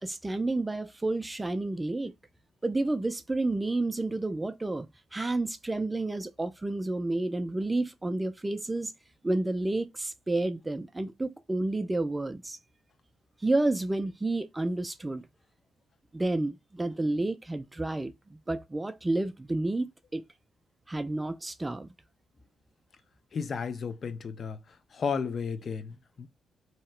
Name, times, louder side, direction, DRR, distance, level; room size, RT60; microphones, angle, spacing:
voice 1, 0.0-2.1 2.6-8.9 9.2-12.6 13.4-15.3 16.1-20.2 20.9-21.9, right 2 dB, 15° right, 0.3 m, -30 dB
voice 2, 23.3-24.6 24.9-26.3, left 6 dB, 45° left, 0.4 m, -33 dB
2.8 x 2.2 x 3.2 m
cardioid pair, 90°, 0 cm